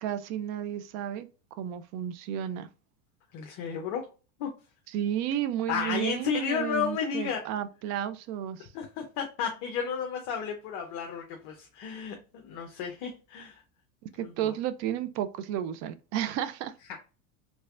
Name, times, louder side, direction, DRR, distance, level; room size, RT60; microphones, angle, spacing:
voice 1, 0.0-1.3 1.6-2.7 4.9-8.7 14.2-16.7, right 10 dB, 40° right, 0.4 m, -32 dB
voice 2, 3.3-4.1 4.4-4.5 5.7-7.4 8.7-13.6 14.2-14.5 16.9-17.0, left 7 dB, 45° left, 0.8 m, -33 dB
3.3 x 3.2 x 2.4 m
supercardioid pair, 120°, 42 cm